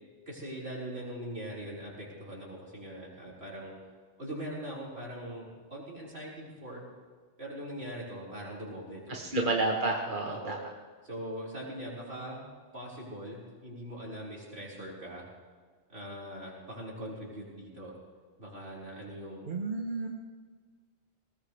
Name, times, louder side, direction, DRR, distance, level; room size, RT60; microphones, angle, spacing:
voice 1, 0.3-3.8 4.2-6.8 7.4-9.5 10.3-10.6 11.0-12.4 12.7-15.3 15.9-17.9 18.4-19.5, right 1 dB, 65° right, -6 dB, 5.4 m, -41 dB
voice 2, 9.1-10.6 19.5-20.1, right 2 dB, 50° right, 0 dB, 1.4 m, -30 dB
20.0 x 19.5 x 3.4 m, 1.5 s
omnidirectional pair, 1.1 m